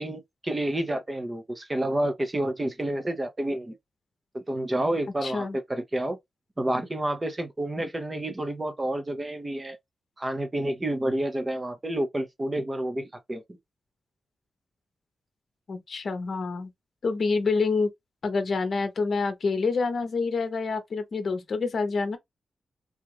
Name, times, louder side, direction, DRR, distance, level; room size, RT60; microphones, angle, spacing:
voice 1, 0.0-3.7 4.3-6.2 6.6-9.8 10.2-13.4, right 1 dB, 20° right, 0.7 m, -29 dB
voice 2, 5.2-5.6 15.7-16.7 17.0-17.9 18.2-22.2, left 4 dB, 50° left, 0.9 m, -27 dB
3.5 x 2.5 x 3.0 m
wide cardioid pair, 155°, 0 cm